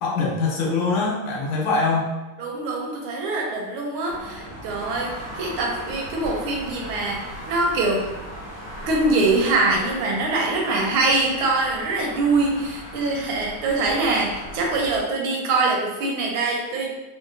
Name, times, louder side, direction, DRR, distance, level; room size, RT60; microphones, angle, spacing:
voice 1, 0.0-2.1, left 3 dB, 75° left, -3 dB, 1.5 m, -23 dB
voice 2, 2.4-8.0 8.9-16.9, right 3 dB, 90° right, 0 dB, 1.5 m, -23 dB
sound 1, 4.1-15.0, equal, 60° left, 1.0 m, -38 dB
3.7 x 2.5 x 2.5 m, 1.1 s
omnidirectional pair, 2.2 m